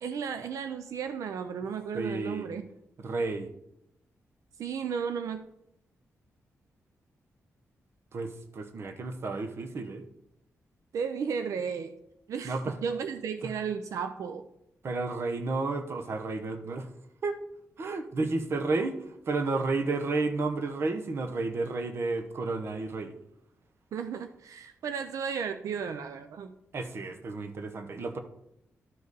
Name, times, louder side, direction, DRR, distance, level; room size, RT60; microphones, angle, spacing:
voice 1, 0.0-2.7 4.6-5.4 10.9-11.9 12.3-14.5 23.9-26.5, right 6 dB, 85° right, 9 dB, 0.5 m, -34 dB
voice 2, 1.9-2.5 3.0-3.5 8.1-10.1 12.4-12.7 14.8-16.9 17.2-17.4 17.8-23.1 26.7-28.2, right 3 dB, 50° right, 7 dB, 0.9 m, -31 dB
12.5 x 5.2 x 4.0 m, 0.80 s
wide cardioid pair, 145°, 5 cm